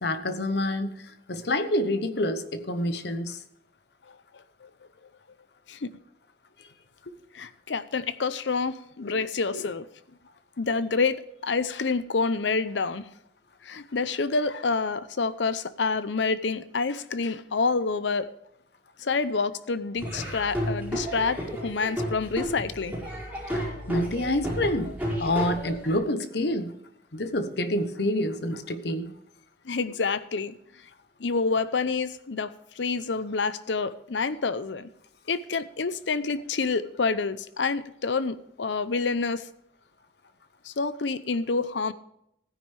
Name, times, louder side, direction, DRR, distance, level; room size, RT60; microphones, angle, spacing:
voice 1, 0.0-1.0 1.3-3.4 9.0-9.2 9.5-9.7 23.9-26.7 27.1-29.1, left 1 dB, 60° left, 10 dB, 1.0 m, -27 dB
voice 2, 4.3-4.7 5.7-5.9 7.3-9.9 10.6-13.1 13.6-18.3 19.0-22.9 29.6-30.6 31.2-34.9 35.3-39.5 40.6-41.9, left 4 dB, 80° left, 15 dB, 0.7 m, -28 dB
Laughter / Drum, 20.0-25.9, equal, 5° right, 5.1 m, -32 dB
16.0 x 9.8 x 3.4 m, 0.76 s
head